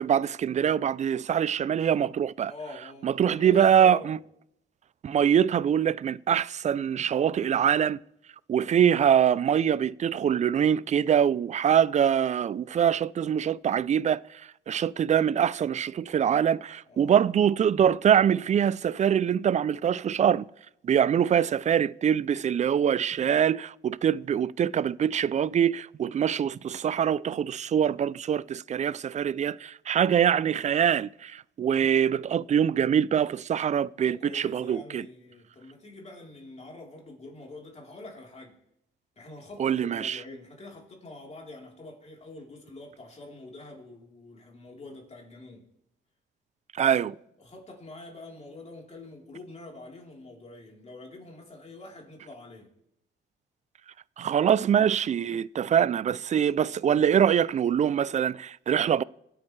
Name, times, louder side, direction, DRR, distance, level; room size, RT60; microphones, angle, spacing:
voice 1, 0.0-2.5 3.0-4.2 5.0-8.0 8.5-14.4 14.7-20.5 20.8-35.1 39.6-40.2 46.8-47.1 54.2-59.0, right 8 dB, 35° right, 0.4 m, -24 dB
voice 2, 2.5-4.2 16.9-17.3 34.0-38.6 39.2-45.7 46.8-47.0 47.4-52.7, left 2 dB, 35° left, 3.7 m, -45 dB
25.0 x 8.7 x 3.3 m
cardioid pair, 90°, 20 cm